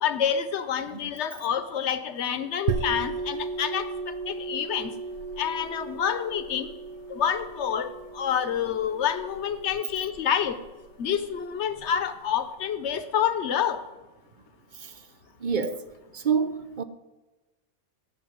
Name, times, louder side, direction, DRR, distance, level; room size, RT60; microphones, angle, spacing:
voice 1, 0.0-4.9 5.4-6.7 7.1-10.6 11.0-13.8, left 8 dB, 60° left, 1.1 m, -28 dB
sound 1, 2.7-12.0, right 5 dB, 70° right, 1.1 m, -36 dB
voice 2, 15.4-15.8 16.1-16.8, right 6 dB, 50° right, 0.6 m, -27 dB
14.0 x 6.1 x 9.4 m
omnidirectional pair, 1.4 m